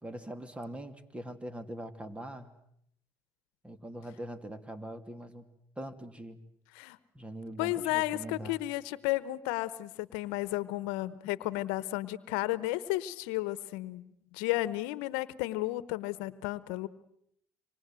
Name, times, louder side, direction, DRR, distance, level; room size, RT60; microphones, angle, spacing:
voice 1, 0.0-2.5 3.6-5.5 5.8-6.4 7.1-8.6, right 1 dB, 15° right, 11 dB, 2.7 m, -42 dB
voice 2, 7.6-16.9, left 17 dB, 85° left, 16 dB, 1.1 m, -33 dB
27.0 x 25.5 x 7.7 m, 0.73 s
supercardioid pair, 75°, 8 cm